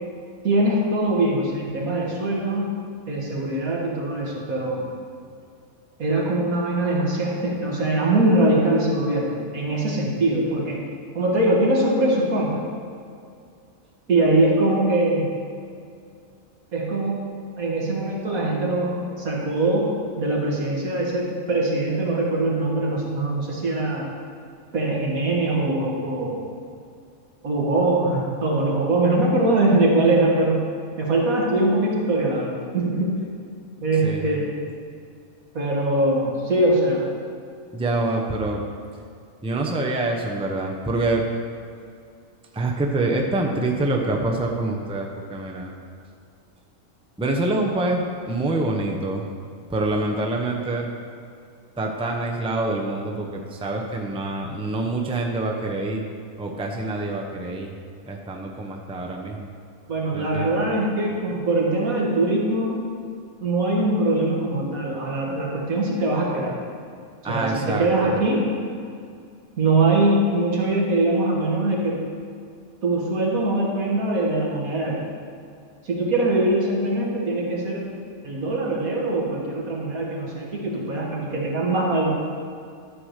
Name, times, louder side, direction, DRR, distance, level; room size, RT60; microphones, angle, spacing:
voice 1, 0.4-2.8 3.1-4.9 6.0-10.8 11.1-12.6 14.1-15.3 16.7-17.2 17.6-19.9 20.2-24.1 24.7-26.4 27.4-30.6 31.0-33.1 33.8-34.5 35.5-37.1 59.9-62.8 63.4-66.6 67.3-68.4 69.6-72.0 72.8-75.0 75.8-77.9 78.2-82.1, right 2 dB, 80° right, -3 dB, 2.2 m, -22 dB
voice 2, 34.0-34.4 37.7-38.6 39.4-41.2 42.5-45.7 47.2-49.3 49.7-50.9 51.8-56.1 56.4-57.7 58.1-59.5 60.1-60.7 67.2-68.2, right 2 dB, 5° right, 0 dB, 0.7 m, -26 dB
12.0 x 4.9 x 6.5 m, 2.3 s
omnidirectional pair, 1.4 m